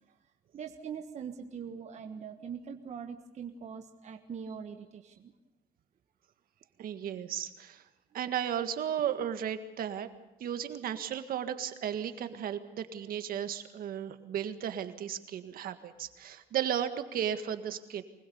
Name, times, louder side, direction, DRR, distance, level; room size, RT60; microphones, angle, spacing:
voice 1, 0.5-5.3, right 7 dB, 45° right, 5 dB, 1.4 m, -42 dB
voice 2, 6.8-7.8 8.1-10.1 10.4-18.0, right 9 dB, 60° right, 9 dB, 1.8 m, -34 dB
24.5 x 20.5 x 7.0 m, 0.95 s
cardioid pair, 110°, 17 cm